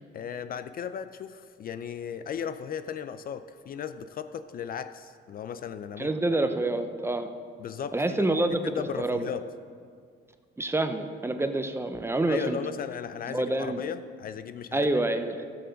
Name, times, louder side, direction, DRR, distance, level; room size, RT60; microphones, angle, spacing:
voice 1, 0.1-6.1 7.6-9.5 12.3-14.9, left 8 dB, 45° left, 11 dB, 0.4 m, -36 dB
voice 2, 6.0-7.3 7.9-9.3 10.6-12.6 13.3-13.8 14.7-15.5, right 2 dB, 10° right, 7 dB, 0.6 m, -27 dB
13.0 x 6.8 x 5.2 m, 2.1 s
cardioid pair, 120°, 20 cm